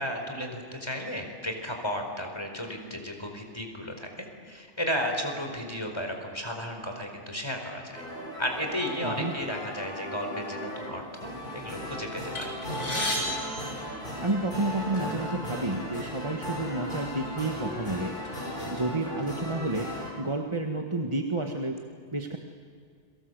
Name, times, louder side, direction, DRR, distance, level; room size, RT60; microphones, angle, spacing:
voice 1, 0.0-8.0 8.4-12.5, equal, 20° left, 3 dB, 4.6 m, -34 dB
sound 1, 7.9-20.1, equal, 45° left, 5.5 m, -36 dB
voice 2, 9.0-9.3 14.2-18.1 18.7-19.9 20.2-21.8 22.1-22.4, right 2 dB, 25° right, 2 dB, 1.5 m, -30 dB
sound 2, 12.3-14.7 15.5-15.6 16.0-16.1 17.0-17.2 17.6-18.8, left 1 dB, 75° left, 5.7 m, -34 dB
30.0 x 24.5 x 8.1 m, 2.1 s
omnidirectional pair, 1.2 m